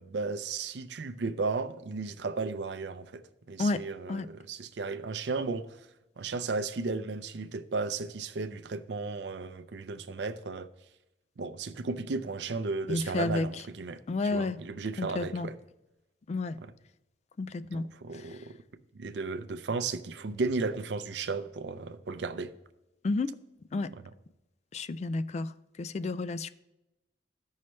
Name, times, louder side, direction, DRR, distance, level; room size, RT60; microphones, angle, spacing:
voice 1, 0.0-3.2 3.5-5.7 6.2-10.7 11.4-15.5 16.6-16.7 17.7-18.6 18.9-22.5 23.9-24.0, right 4 dB, 80° right, 0.5 m, -34 dB
voice 2, 12.9-13.5 14.1-14.6 15.0-15.5 16.3-16.6 17.4-17.9 18.1-18.2 23.0-23.3 23.7-23.9 24.7-25.5 25.8-26.5, left 3 dB, 40° left, 0.3 m, -31 dB
14.0 x 5.6 x 3.2 m
head